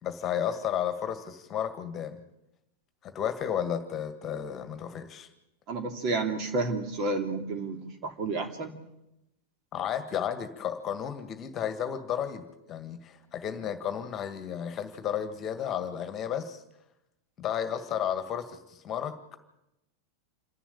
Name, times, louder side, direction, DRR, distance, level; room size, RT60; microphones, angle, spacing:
voice 1, 0.0-2.2 3.0-5.3 9.7-12.4 12.7-16.6 17.4-19.2, left 9 dB, 30° left, 9 dB, 1.8 m, -33 dB
voice 2, 5.7-8.7, right 3 dB, 40° right, 5 dB, 2.9 m, -31 dB
27.5 x 11.5 x 8.7 m, 0.89 s
figure-of-eight pair, 90°, 0 cm